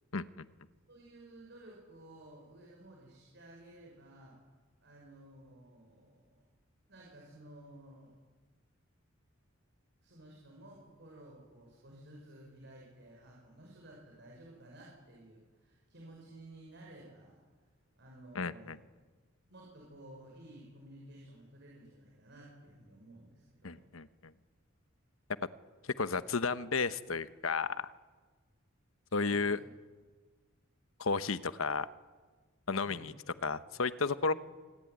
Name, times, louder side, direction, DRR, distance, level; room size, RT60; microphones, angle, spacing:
voice 1, 0.1-0.5 18.3-18.8 23.6-24.3 26.0-27.9 29.1-29.6 31.0-31.9 32.7-33.1 33.4-34.3, left 4 dB, 80° left, 13 dB, 1.0 m, -33 dB
voice 2, 0.9-4.4 4.8-6.5 6.9-8.1 10.0-17.4 18.0-18.8 19.5-23.9 29.1-29.7 32.8-33.1 34.2-34.3, right 1 dB, 60° right, -2 dB, 6.1 m, -54 dB
26.5 x 19.5 x 9.4 m, 1.4 s
head